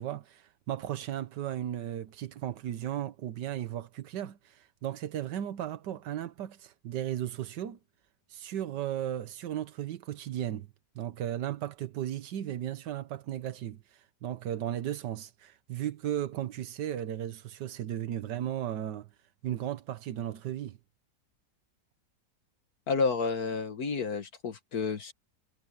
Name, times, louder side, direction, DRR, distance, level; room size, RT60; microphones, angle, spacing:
voice 1, 0.0-7.8 8.3-10.7 10.9-19.1 19.4-20.8, right 11 dB, 90° right, 1.6 m, -35 dB
voice 2, 22.9-25.1, left 4 dB, 65° left, 1.8 m, -30 dB
omnidirectional pair, 1.8 m